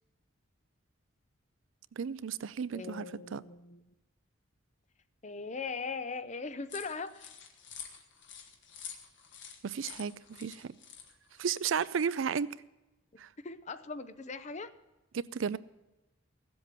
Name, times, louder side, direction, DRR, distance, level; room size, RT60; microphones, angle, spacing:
voice 1, 2.0-3.4 9.6-10.7 11.4-12.5 13.2-13.3 15.1-15.6, right 6 dB, 70° right, 17 dB, 0.4 m, -33 dB
voice 2, 2.7-3.9 5.2-7.3 13.1-14.7, left 4 dB, 35° left, 12 dB, 0.6 m, -40 dB
sound 1, 6.7-12.0, left 7 dB, 60° left, 1.5 m, -48 dB
15.5 x 7.8 x 6.8 m, 1.0 s
head